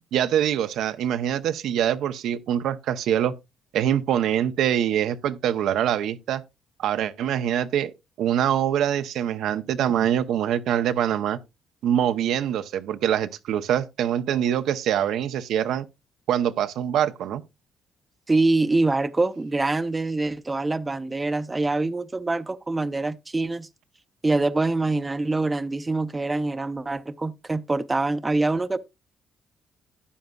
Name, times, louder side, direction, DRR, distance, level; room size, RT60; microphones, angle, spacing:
voice 1, 0.1-3.3 3.7-6.4 6.8-11.4 11.8-15.9 16.3-17.4, right 10 dB, 80° right, 0.6 m, -24 dB
voice 2, 18.3-23.7 24.2-28.8, right 2 dB, 20° right, 0.6 m, -25 dB
12.5 x 9.3 x 2.3 m
cardioid pair, 90°, 0 cm